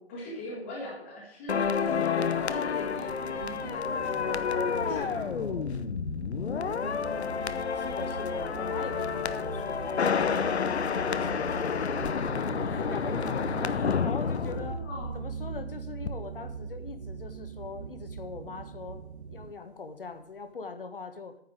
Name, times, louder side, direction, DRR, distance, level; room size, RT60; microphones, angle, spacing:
voice 1, 0.0-5.6 14.2-15.2, left 1 dB, 10° left, -4 dB, 1.7 m, -40 dB
sound 1, 1.5-15.6 15.9-16.1, left 6 dB, 85° left, 0.9 m, -30 dB
voice 2, 1.9-2.4 6.8-11.8 12.1-14.9 15.1-21.4, left 4 dB, 55° left, 9 dB, 1.4 m, -42 dB
sound 2, 2.7-19.5, right 6 dB, 80° right, 0.8 m, -41 dB
9.5 x 5.8 x 8.2 m, 0.71 s
hypercardioid pair, 180°, 32 cm